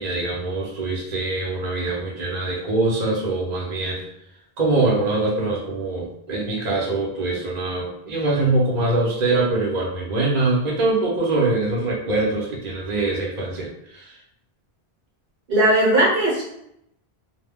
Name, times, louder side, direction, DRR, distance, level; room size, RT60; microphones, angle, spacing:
voice 1, 0.0-4.0 4.6-14.1, right 2 dB, 45° right, -4 dB, 0.9 m, -23 dB
voice 2, 15.5-16.4, right 1 dB, 65° right, -6 dB, 1.1 m, -18 dB
2.3 x 2.1 x 3.5 m, 0.76 s
omnidirectional pair, 1.0 m